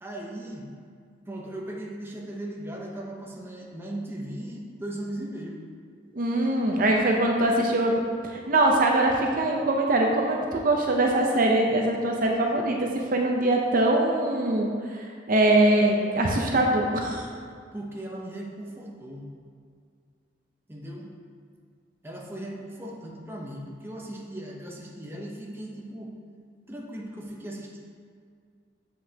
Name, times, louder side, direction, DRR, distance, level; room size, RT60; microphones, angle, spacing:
voice 1, 0.0-0.7 1.3-5.6 17.7-19.3 20.7-21.2 22.0-26.1 26.7-27.8, right 1 dB, 15° right, -2 dB, 0.7 m, -37 dB
voice 2, 6.1-7.9 8.2-14.7 15.0-17.3, right 1 dB, 50° right, 1 dB, 0.6 m, -23 dB
7.7 x 5.4 x 2.8 m, 2.1 s
head